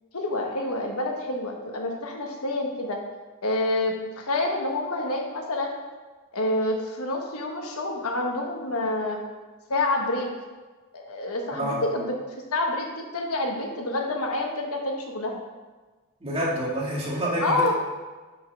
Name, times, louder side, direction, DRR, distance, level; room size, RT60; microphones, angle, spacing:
voice 1, 0.1-3.0 3.4-5.7 6.3-9.2 9.7-10.3 10.9-12.1 12.5-15.4 17.4-17.7, left 2 dB, 85° left, 1 dB, 1.2 m, -28 dB
voice 2, 11.5-11.8 16.2-17.7, right 1 dB, 25° right, -5 dB, 1.9 m, -28 dB
5.5 x 5.4 x 6.1 m, 1.3 s
head